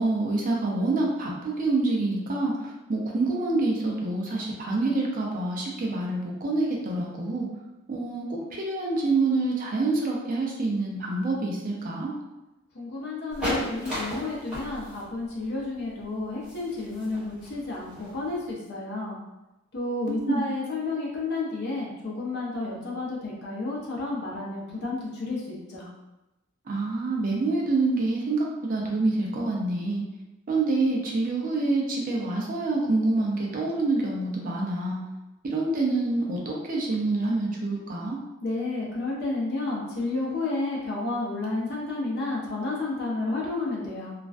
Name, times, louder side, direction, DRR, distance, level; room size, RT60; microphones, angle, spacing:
voice 1, 0.0-2.5 2.9-7.5 7.9-8.3 8.5-12.1 20.1-20.4 26.7-30.0 30.5-35.0 35.4-38.2, right 2 dB, 40° right, -2 dB, 0.4 m, -26 dB
voice 2, 12.7-19.2 19.7-25.9 38.4-44.1, left 2 dB, 55° left, -4 dB, 0.6 m, -31 dB
sound 1, 13.3-18.5, equal, 5° right, 1.0 m, -34 dB
2.4 x 2.1 x 2.4 m, 0.99 s
head